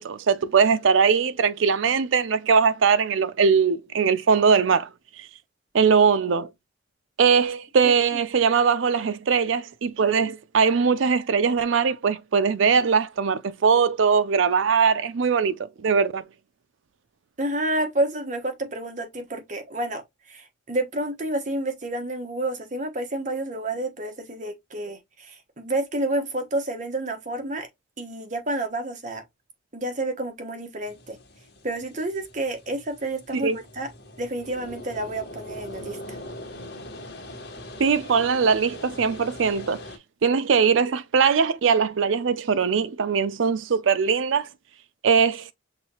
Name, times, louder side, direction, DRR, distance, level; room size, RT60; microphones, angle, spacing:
voice 1, 0.0-4.9 5.2-5.3 5.7-6.5 7.2-16.2 33.3-33.6 37.8-39.8 40.2-44.5 45.0-45.5, right 6 dB, 75° right, 0.5 m, -21 dB
voice 2, 17.4-27.7 28.0-29.2 29.7-31.2 31.6-33.9 34.2-36.2, right 1 dB, 40° right, 1.2 m, -29 dB
sound 1, 30.8-40.0, left 1 dB, 60° left, 1.4 m, -41 dB
5.9 x 2.7 x 2.9 m
head